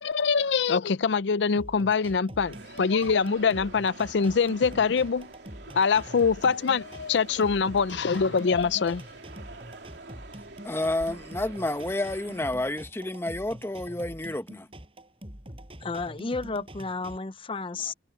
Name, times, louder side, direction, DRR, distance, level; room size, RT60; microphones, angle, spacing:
voice 1, 0.0-5.3 5.8-9.0, left 5 dB, 80° left, 0.5 m, -24 dB
sound 1, 1.6-17.2, equal, 30° right, 6.7 m, -45 dB
sound 2, 2.5-12.5, right 3 dB, 75° right, 2.9 m, -47 dB
voice 2, 10.6-14.7, left 1 dB, 15° left, 0.9 m, -30 dB
voice 3, 15.8-17.9, left 3 dB, 30° left, 0.6 m, -32 dB
head